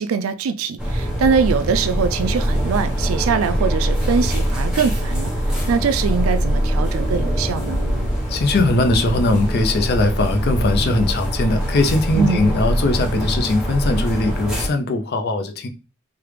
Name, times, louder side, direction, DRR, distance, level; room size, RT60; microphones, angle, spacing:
voice 1, 0.0-5.3 5.7-7.8 12.1-12.5, right 6 dB, 75° right, 0.3 m, -22 dB
sound 1, 0.8-14.7, equal, 5° right, 1.0 m, -23 dB
voice 2, 8.3-15.7, left 2 dB, 50° left, 0.5 m, -20 dB
3.3 x 2.4 x 3.2 m
head